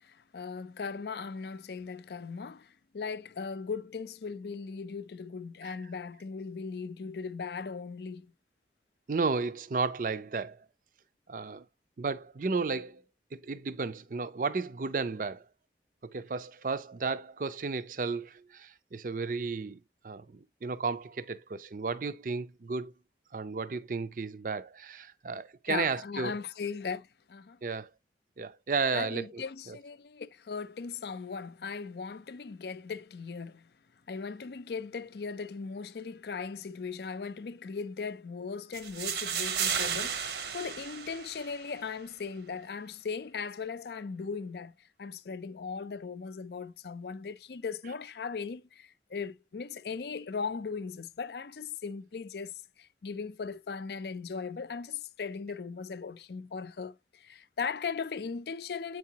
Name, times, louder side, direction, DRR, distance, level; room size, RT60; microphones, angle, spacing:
voice 1, 0.0-8.3 25.7-27.6 28.9-33.7 34.1-44.7 45.0-59.0, left 5 dB, 65° left, 0.5 m, -38 dB
voice 2, 9.1-10.7 11.3-11.6 12.0-13.0 13.3-15.5 16.0-22.9 23.3-26.3 27.6-27.9 28.4-29.8, right 4 dB, 50° right, 0.5 m, -33 dB
sound 1, 38.7-41.8, right 7 dB, 70° right, 0.8 m, -33 dB
8.2 x 4.7 x 2.8 m
head